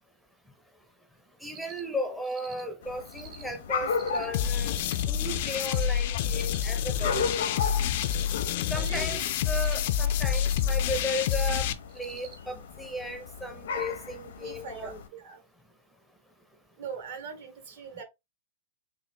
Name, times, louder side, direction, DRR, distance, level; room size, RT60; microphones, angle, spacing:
voice 1, 1.4-4.7 5.1-7.3 8.7-15.0, equal, ahead, 0.5 m, -35 dB
Cricket, 1.4-1.8 2.2-2.6 3.0-3.4 3.9-4.2 4.6-5.0 5.5-5.8 6.2-6.6 7.0-7.4 7.8-8.2 8.6-9.0 9.5-9.8 10.2-10.6 11.0-11.4 11.9-12.3, right 8 dB, 35° right, 1.0 m, -48 dB
sound 1, 2.8-15.1, left 5 dB, 75° left, 0.7 m, -37 dB
sound 2, 4.3-11.7, left 9 dB, 55° left, 0.4 m, -28 dB
voice 2, 8.7-9.2 14.4-15.4 16.8-18.0, right 5 dB, 65° right, 1.4 m, -41 dB
4.0 x 2.2 x 3.3 m
hypercardioid pair, 150°, 0 cm